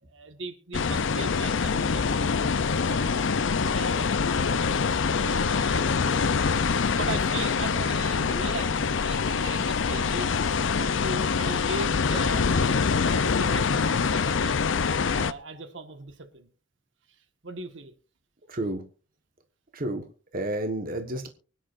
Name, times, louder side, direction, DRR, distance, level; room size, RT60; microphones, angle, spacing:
voice 1, 0.0-3.3 3.7-4.8 5.2-6.3 6.6-10.5 10.8-14.6 15.0-16.5 17.4-17.9, right 3 dB, 75° right, 8 dB, 1.6 m, -39 dB
sound 1, 0.7-15.3, left 5 dB, 75° left, 0.6 m, -25 dB
voice 2, 18.5-18.9 19.7-21.3, right 1 dB, 50° right, 5 dB, 1.4 m, -31 dB
24.5 x 10.0 x 2.6 m, 0.36 s
head